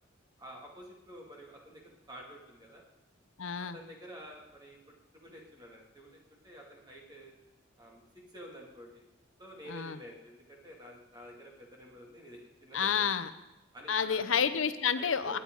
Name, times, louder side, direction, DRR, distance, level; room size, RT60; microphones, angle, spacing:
voice 1, 0.4-2.8 3.7-4.8 5.1-7.3 7.8-9.1 9.4-13.3 13.7-14.2 14.9-15.4, equal, 20° right, -1 dB, 2.6 m, -50 dB
voice 2, 3.4-3.7 9.7-10.0 12.7-13.3 13.9-15.4, left 7 dB, 85° left, 12 dB, 0.7 m, -29 dB
18.5 x 10.5 x 4.0 m, 0.95 s
head